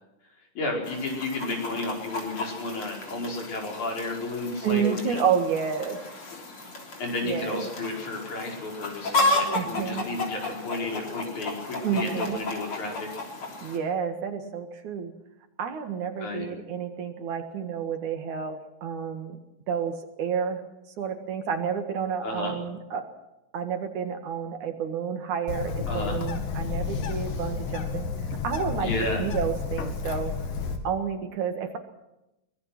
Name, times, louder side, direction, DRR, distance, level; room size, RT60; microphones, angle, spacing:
voice 1, 0.5-5.2 7.0-13.1 16.2-16.5 22.2-22.5 25.9-26.2 28.8-29.3, left 2 dB, 60° left, 0 dB, 6.4 m, -32 dB
Chicken rooster, 0.8-13.8, left 2 dB, 40° left, 4.1 m, -33 dB
voice 2, 4.6-6.0 7.2-7.7 9.4-10.1 11.8-12.4 13.6-15.1 15.6-19.4 19.7-20.6 21.0-23.0 23.5-28.1 28.4-30.3 30.8-31.8, right 7 dB, 65° right, 6 dB, 3.0 m, -30 dB
Bird, 25.5-30.8, left 5 dB, 80° left, 3.8 m, -31 dB
24.5 x 20.0 x 6.0 m, 0.93 s
omnidirectional pair, 3.9 m